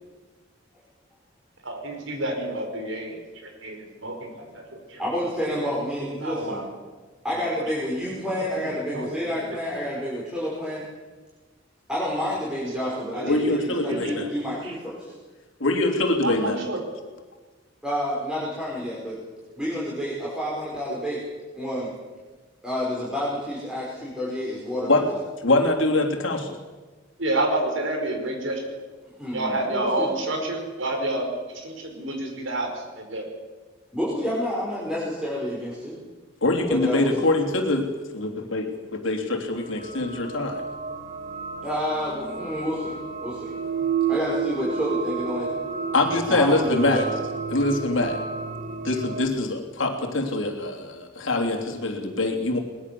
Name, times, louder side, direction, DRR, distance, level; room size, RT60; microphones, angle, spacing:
voice 1, 1.6-5.0 5.5-5.8 6.2-6.6 7.5-7.7 8.5-9.4 9.7-9.8 12.8-13.4 13.8-14.3 14.6-14.7 16.1-16.8 19.5-19.6 21.1-21.2 27.2-28.6 29.3-31.3 31.6-33.3, right 2 dB, 80° right, 3 dB, 5.1 m, -30 dB
voice 2, 5.0-6.6 7.2-10.9 11.9-15.1 17.8-19.2 19.6-21.2 21.5-21.9 22.6-25.0 29.1-30.1 33.9-36.0 36.7-37.3 41.6-43.5 44.1-45.5 46.3-47.1, equal, 5° right, -7 dB, 5.3 m, -29 dB
voice 3, 13.2-14.3 15.6-16.6 24.8-25.0 25.4-26.6 36.4-40.6 45.9-47.0 47.5-48.2 48.8-52.6, left 2 dB, 85° left, 2 dB, 3.3 m, -24 dB
sound 1, 39.8-49.3, right 5 dB, 45° right, 1.7 m, -31 dB
21.5 x 20.5 x 7.0 m, 1.3 s
head